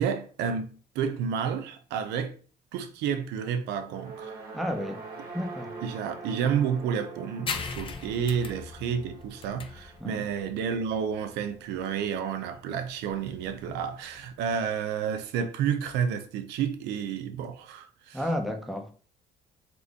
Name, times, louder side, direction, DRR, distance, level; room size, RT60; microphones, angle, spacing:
voice 1, 0.0-2.4 2.7-4.4 5.8-18.2, right 7 dB, 85° right, 0.6 m, -30 dB
sound 1, 3.8-12.2, right 4 dB, 65° right, 1.2 m, -45 dB
voice 2, 4.5-5.0 5.3-5.7 10.0-10.2 18.1-18.9, left 1 dB, ahead, 0.9 m, -31 dB
sound 2, 7.5-14.6, left 5 dB, 30° left, 0.6 m, -40 dB
4.1 x 2.8 x 3.5 m
cardioid pair, 110°, 17 cm